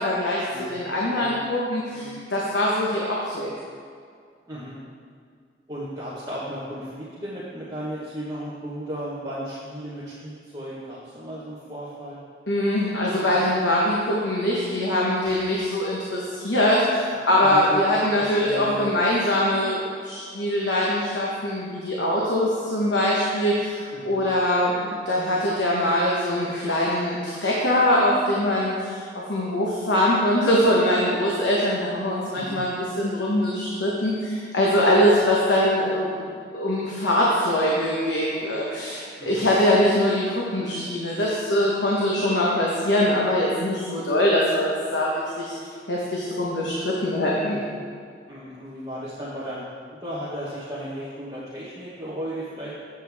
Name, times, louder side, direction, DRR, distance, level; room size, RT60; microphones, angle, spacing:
voice 1, 0.0-3.5 12.5-23.8 24.0-29.0 29.3-36.2 36.5-45.1 45.4-45.5 45.9-47.6, left 1 dB, 80° left, -4 dB, 1.1 m, -23 dB
voice 2, 1.0-1.5 1.9-2.2 4.5-4.8 5.7-12.2 15.2-15.4 17.4-17.8 18.1-18.9 23.9-24.3 32.3-32.6 39.2-39.5 48.3-52.7, equal, 20° right, -10 dB, 1.2 m, -35 dB
7.9 x 7.7 x 3.5 m, 2.1 s
head